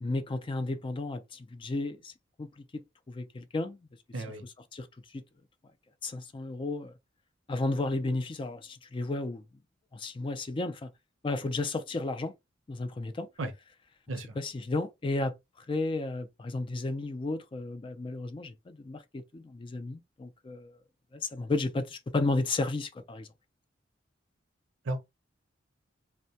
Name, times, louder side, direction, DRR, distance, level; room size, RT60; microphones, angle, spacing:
voice 1, 0.0-2.1 2.4-3.8 4.4-4.9 5.1-5.2 6.0-6.9 7.5-9.4 9.9-10.9 11.2-12.3 12.7-13.3 14.3-15.3 15.7-20.8 21.1-23.3, left 2 dB, 25° left, 0.4 m, -33 dB
voice 2, 4.1-4.4 13.4-13.5 14.1-14.3 24.9-25.0, right 2 dB, 90° right, 0.6 m, -33 dB
2.1 x 2.1 x 2.7 m
head